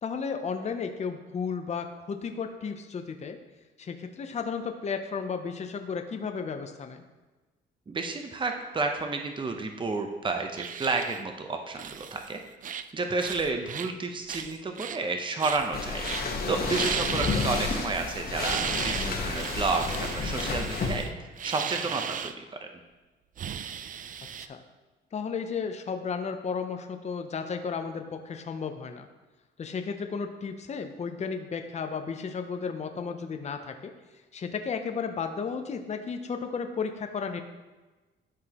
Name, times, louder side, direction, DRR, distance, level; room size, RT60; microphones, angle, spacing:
voice 1, 0.0-3.4 3.8-7.0 17.3-17.4 24.4-24.6 25.1-29.1 29.6-33.9 34.3-37.4, left 5 dB, 35° left, 6 dB, 0.6 m, -33 dB
voice 2, 7.9-12.4 12.7-16.1 16.5-21.1 21.4-22.7, right 3 dB, 25° right, 4 dB, 0.8 m, -31 dB
sound 1, 10.6-11.2 11.8-12.3 12.6-12.9 13.2-13.9 14.3-15.0 15.4-15.7 16.0-16.3 16.6-18.1 18.3-22.3 23.4-24.5, right 8 dB, 40° right, 0.4 m, -36 dB
sound 2, 15.7-21.0, left 4 dB, 50° left, 1.3 m, -31 dB
12.0 x 4.8 x 3.0 m, 1.2 s
cardioid pair, 90°, 20 cm